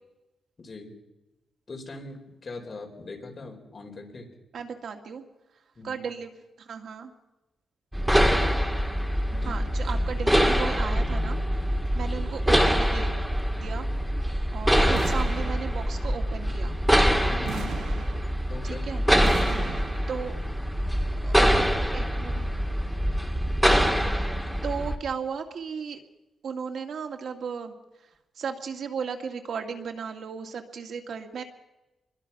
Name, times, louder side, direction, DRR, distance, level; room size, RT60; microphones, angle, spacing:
voice 1, 0.6-0.9 1.7-4.3 5.8-6.0 9.3-9.7 17.3-17.8 18.5-18.8 19.4-19.9, left 3 dB, 30° left, 2 dB, 4.7 m, -41 dB
voice 2, 4.5-5.2 5.8-7.1 9.4-11.4 11.9-13.1 13.5-13.9 14.5-16.8 18.6-19.0 20.1-20.3 21.2-21.3 21.9-22.5 24.0-24.3 24.6-26.0 26.4-27.7 28.4-31.4, right 6 dB, 65° right, 5 dB, 2.1 m, -35 dB
sound 1, 7.9-24.9, equal, 5° right, 1.9 m, -24 dB
sound 2, 14.9-16.2 17.4-18.7 19.2-20.4, right 7 dB, 85° right, 0.8 m, -38 dB
26.5 x 22.5 x 6.0 m, 1.0 s
wide cardioid pair, 150°, 0 cm